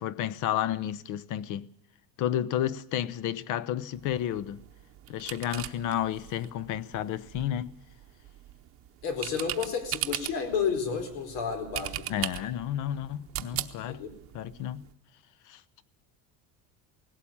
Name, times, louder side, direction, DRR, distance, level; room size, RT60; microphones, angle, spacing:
voice 1, 0.0-1.7 2.2-4.6 5.1-7.7 12.1-14.0 14.3-14.8 15.5-15.6, left 11 dB, 55° left, 0.8 m, -31 dB
sound 1, 3.9-14.9, right 13 dB, 35° right, 0.8 m, -40 dB
voice 2, 9.0-12.2 13.9-14.1, left 6 dB, 90° left, 4.4 m, -31 dB
18.5 x 16.5 x 8.6 m
cardioid pair, 170°, 37 cm